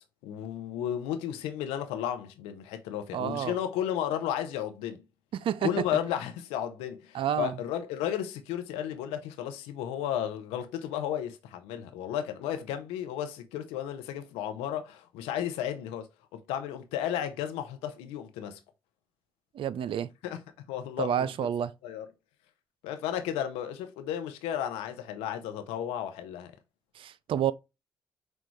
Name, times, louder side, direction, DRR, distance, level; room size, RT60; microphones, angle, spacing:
voice 1, 0.2-5.0 5.6-18.6 20.2-20.4 20.7-21.3 21.8-22.1 22.8-26.5, left 10 dB, 80° left, 0.6 m, -33 dB
voice 2, 3.1-3.6 5.3-5.7 7.1-7.6 19.5-20.1 21.0-21.7 27.0-27.5, right 9 dB, 60° right, 0.4 m, -29 dB
6.2 x 2.3 x 3.1 m
hypercardioid pair, 40°, 10 cm